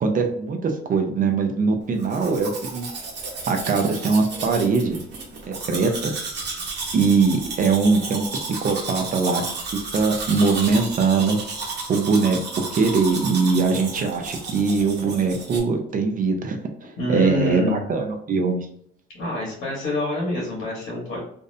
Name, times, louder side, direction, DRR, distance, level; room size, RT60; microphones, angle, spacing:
voice 1, 0.0-2.9 3.5-5.0 5.5-6.1 6.9-9.5 9.7-11.4 11.9-18.6, right 4 dB, 45° right, 4 dB, 0.5 m, -22 dB
Domestic sounds home sounds, 2.0-15.6, right 3 dB, 60° right, 0.9 m, -33 dB
voice 2, 17.0-17.8 19.1-21.2, left 2 dB, 80° left, -4 dB, 1.1 m, -27 dB
2.5 x 2.0 x 2.6 m, 0.67 s
cardioid pair, 100°, 20 cm